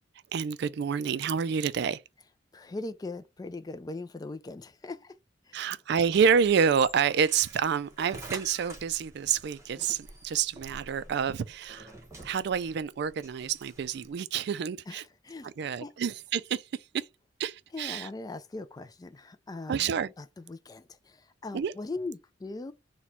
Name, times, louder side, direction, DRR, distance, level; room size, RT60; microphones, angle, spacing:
voice 1, 0.3-2.0 5.5-11.9 12.2-15.0 15.4-16.6 16.9-17.1 17.4-18.1 19.7-20.1 21.5-21.7, right 7 dB, 60° right, 0.3 m, -28 dB
voice 2, 2.5-5.2 5.4-5.8 14.9-15.5 15.8-15.9 17.7-19.9 20.2-22.7, left 2 dB, 20° left, 0.3 m, -40 dB
sound 1, 6.0-14.1, right 1 dB, 15° right, 1.2 m, -48 dB
4.1 x 2.2 x 4.4 m
head